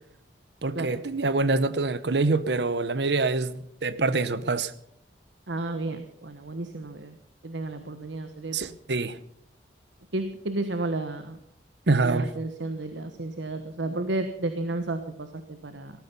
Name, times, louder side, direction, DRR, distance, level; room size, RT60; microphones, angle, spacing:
voice 1, 0.6-4.7 8.5-9.2 11.9-12.3, right 3 dB, 65° right, 0.9 m, -25 dB
voice 2, 5.5-7.2 7.4-8.8 10.1-11.4 12.0-15.9, right 2 dB, 90° right, 1.2 m, -32 dB
18.0 x 14.0 x 5.4 m
head